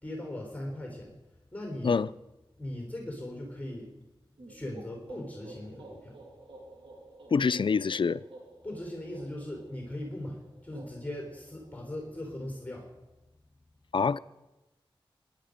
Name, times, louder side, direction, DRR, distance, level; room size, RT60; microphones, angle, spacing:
voice 1, 0.0-1.1 1.5-2.0 2.6-3.9 4.5-6.1 8.6-12.9, left 1 dB, 15° left, 3.8 m, -39 dB
sound 1, 4.4-12.1, right 2 dB, 70° right, 3.0 m, -51 dB
voice 2, 7.3-8.2 13.9-14.2, left 5 dB, 60° left, 0.5 m, -25 dB
19.0 x 11.0 x 5.2 m
cardioid pair, 50°, 9 cm